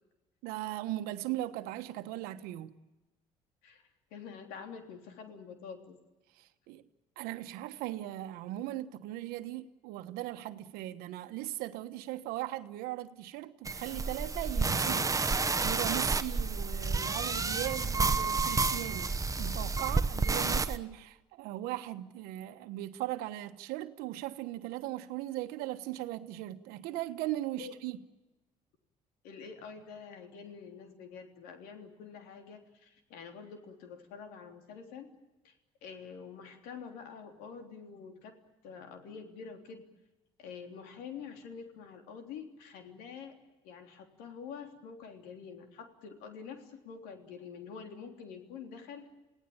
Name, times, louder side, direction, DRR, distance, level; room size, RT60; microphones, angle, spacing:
voice 1, 0.4-2.8 6.4-6.9 7.2-28.0, right 15 dB, 80° right, 1.3 m, -38 dB
voice 2, 3.6-6.0 27.6-27.7 29.2-35.1 35.4-35.5 35.8-38.3 38.6-39.8 40.4-43.4 43.6-49.1, left 6 dB, 80° left, 3.4 m, -47 dB
sound 1, 13.6-20.8, right 4 dB, 20° right, 1.2 m, -30 dB
28.5 x 17.5 x 8.9 m
supercardioid pair, 70°, 15 cm